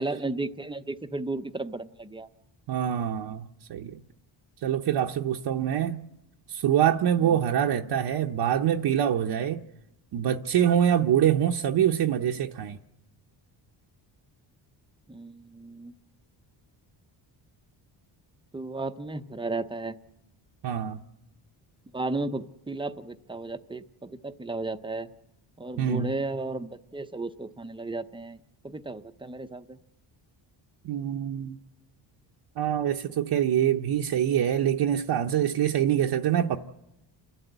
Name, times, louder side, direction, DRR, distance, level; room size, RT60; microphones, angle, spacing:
voice 1, 0.0-2.3 7.2-7.4 15.1-15.9 18.5-20.0 21.9-25.1 25.6-29.8, right 2 dB, 10° right, 0.7 m, -34 dB
voice 2, 2.7-4.0 4.6-6.0 6.5-9.6 10.1-12.8 20.6-21.0 25.8-26.1 30.8-31.6 32.6-36.6, right 10 dB, 60° right, 0.9 m, -25 dB
29.0 x 12.0 x 8.0 m
cardioid pair, 115°, 46 cm